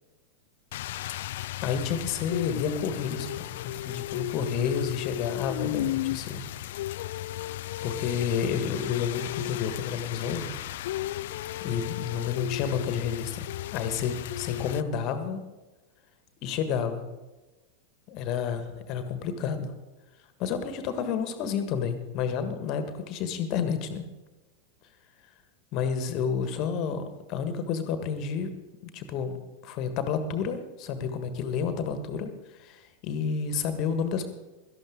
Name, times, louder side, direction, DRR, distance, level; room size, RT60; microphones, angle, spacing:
Rain, 0.7-14.8, left 15 dB, 55° left, 0.4 m, -34 dB
voice 1, 1.6-6.4 7.8-10.5 11.6-15.4 16.4-17.0 18.1-19.7 20.4-24.1 25.7-27.0 27.3-28.5 28.8-29.4 29.6-34.3, left 6 dB, 40° left, 9 dB, 1.5 m, -30 dB
17.5 x 13.0 x 3.7 m, 1.1 s
figure-of-eight pair, 90°, 0 cm